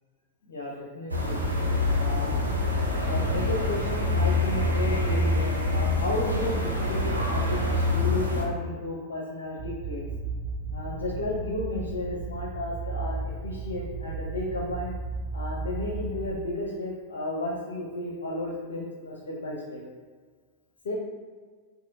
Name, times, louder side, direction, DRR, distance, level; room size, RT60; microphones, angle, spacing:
voice 1, 0.4-1.4 2.0-2.4 3.0-10.0 10.7-14.9 15.3-19.8 20.8-20.9, left 2 dB, 65° left, -2 dB, 0.6 m, -33 dB
sound 1, 1.1-8.4, left 2 dB, 80° right, 0.5 m, -25 dB
sound 2, 9.6-16.4, right 3 dB, 30° right, 0.4 m, -35 dB
4.1 x 2.6 x 2.6 m, 1.5 s
figure-of-eight pair, 90°, 0 cm